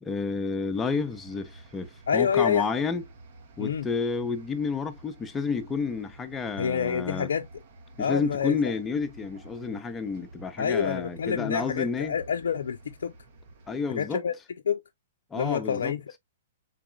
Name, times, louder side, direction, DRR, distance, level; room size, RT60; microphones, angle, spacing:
voice 1, 0.0-3.0 3.6-7.3 8.0-12.2 13.7-14.2 15.3-15.9, left 5 dB, 15° left, 0.7 m, -30 dB
sound 1, 0.7-13.8, right 2 dB, 55° right, 1.1 m, -51 dB
voice 2, 2.1-2.7 3.6-3.9 6.6-7.5 8.0-8.5 10.6-13.1 14.0-14.3 14.7-14.8 15.4-16.2, left 7 dB, 75° left, 0.5 m, -27 dB
4.1 x 3.5 x 2.3 m
hypercardioid pair, 125°, 0 cm